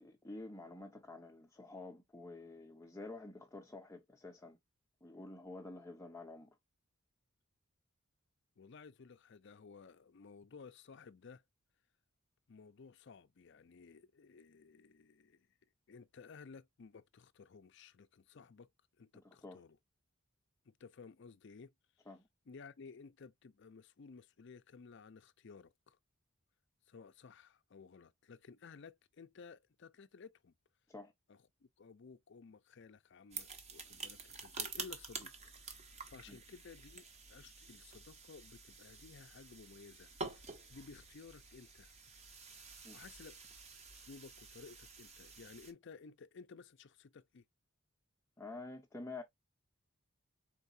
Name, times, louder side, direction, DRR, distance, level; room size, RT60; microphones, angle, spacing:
voice 1, 0.0-4.6 5.0-6.6 19.1-19.6 22.1-22.3 30.9-31.1 36.3-36.4 42.8-43.0 48.4-49.2, left 2 dB, 10° left, 0.6 m, -49 dB
voice 2, 8.6-11.4 12.5-15.5 15.9-18.7 19.0-19.8 20.7-21.7 22.5-26.0 26.9-30.5 31.3-35.3 35.6-40.4 40.7-41.9 42.5-42.6 42.9-43.4 43.9-47.4, left 5 dB, 55° left, 0.5 m, -56 dB
sound 1, 33.3-45.7, right 4 dB, 30° right, 0.8 m, -49 dB
4.5 x 3.9 x 2.6 m
head